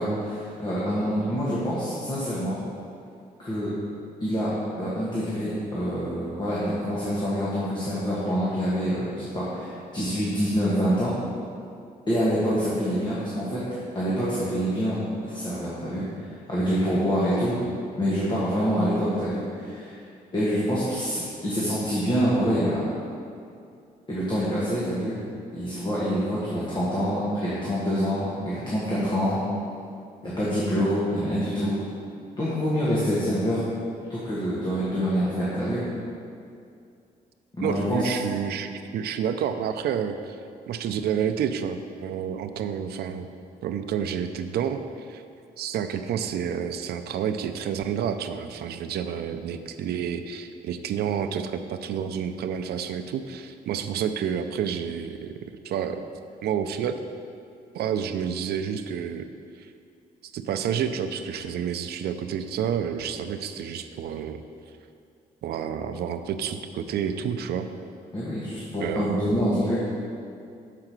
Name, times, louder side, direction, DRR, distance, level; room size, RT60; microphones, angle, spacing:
voice 1, 0.0-2.5 3.4-3.7 4.2-11.1 12.1-13.6 13.9-15.0 15.3-17.6 18.0-20.0 20.3-22.9 24.1-25.2 25.5-29.4 30.2-31.8 32.3-33.6 34.1-35.8 37.5-38.1 68.1-69.8, equal, 30° left, -8 dB, 1.5 m, -26 dB
voice 2, 37.6-40.4 40.7-43.3 43.6-45.2 45.6-55.3 55.6-56.0 56.4-57.0 57.7-59.3 59.6-59.7 60.2-64.4 65.4-67.7 68.8-69.4, right 8 dB, 80° right, 8 dB, 0.4 m, -29 dB
6.7 x 4.8 x 6.0 m, 2.4 s
cardioid pair, 130°, 16 cm